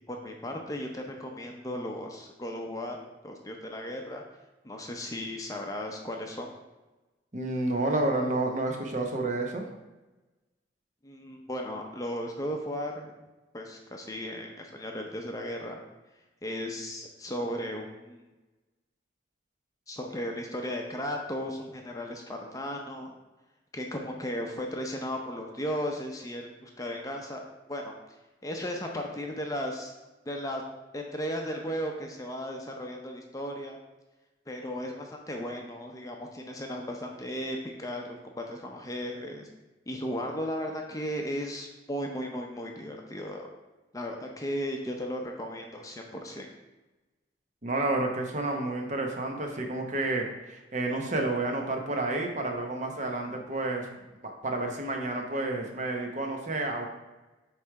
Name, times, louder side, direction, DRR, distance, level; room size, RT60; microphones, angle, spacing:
voice 1, 0.1-3.0 3.2-4.2 4.6-6.5 11.0-13.1 13.5-15.8 16.4-18.2 19.9-23.1 23.7-27.4 27.7-27.9 28.4-29.9 30.3-30.6 30.9-33.8 34.5-39.5 39.9-43.5 43.9-46.5, equal, 20° left, 2 dB, 0.7 m, -35 dB
voice 2, 7.3-9.6 47.6-53.9 54.2-56.9, right 2 dB, 40° right, 2 dB, 0.9 m, -30 dB
8.3 x 3.3 x 4.7 m, 1.1 s
head